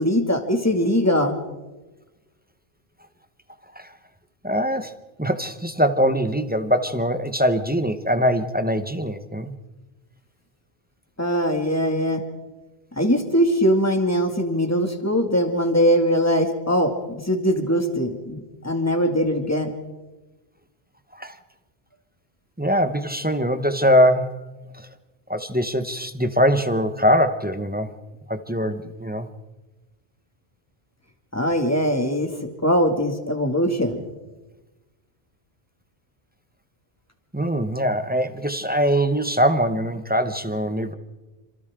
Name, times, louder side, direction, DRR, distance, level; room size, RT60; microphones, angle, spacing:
voice 1, 0.0-1.4 11.2-12.2 13.0-19.7 31.3-32.3 32.6-34.0, equal, 15° left, 4 dB, 2.4 m, -21 dB
voice 2, 4.4-9.5 21.1-21.4 22.6-24.4 24.7-24.9 25.3-27.9 28.3-29.3 37.3-40.9, equal, 10° right, 8 dB, 1.1 m, -22 dB
28.5 x 26.5 x 3.8 m, 1.2 s
omnidirectional pair, 1.1 m